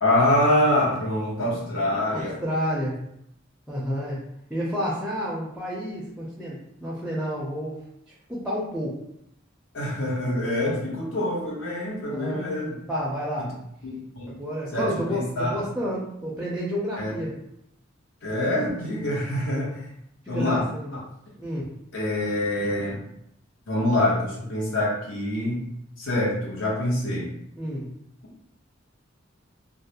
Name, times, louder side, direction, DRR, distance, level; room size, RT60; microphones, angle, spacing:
voice 1, 0.0-2.4 9.7-12.8 13.4-13.5 13.8-14.3 14.7-15.6 17.0-17.1 18.2-19.9 20.3-20.6 20.9-21.0 21.9-23.0 23.7-25.7 26.0-27.3, left 1 dB, 75° left, -5 dB, 0.8 m, -25 dB
voice 2, 2.1-3.0 3.7-4.2 4.5-7.8 8.3-9.0 10.7-10.8 12.1-12.5 12.9-13.5 14.4-17.3 20.2-21.0 21.4-21.7 27.6-27.9, equal, 5° right, -5 dB, 0.4 m, -30 dB
2.3 x 2.0 x 2.8 m, 0.77 s
head